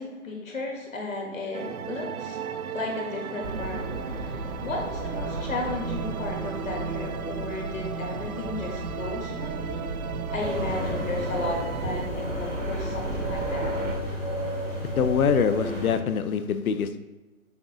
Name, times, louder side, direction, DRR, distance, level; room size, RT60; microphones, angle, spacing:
voice 1, 0.0-2.4 2.7-9.8 10.3-13.7, left 2 dB, 65° left, 0 dB, 1.3 m, -34 dB
sound 1, 1.5-12.1, right 7 dB, 80° right, 0.5 m, -36 dB
sound 2, 3.4-14.0, right 2 dB, 60° right, 0.8 m, -35 dB
sound 3, 10.4-15.9, equal, 15° left, 0.6 m, -32 dB
voice 2, 14.8-17.0, left 6 dB, 80° left, 11 dB, 0.5 m, -24 dB
6.4 x 2.6 x 2.9 m, 1.1 s
hypercardioid pair, 165°, 42 cm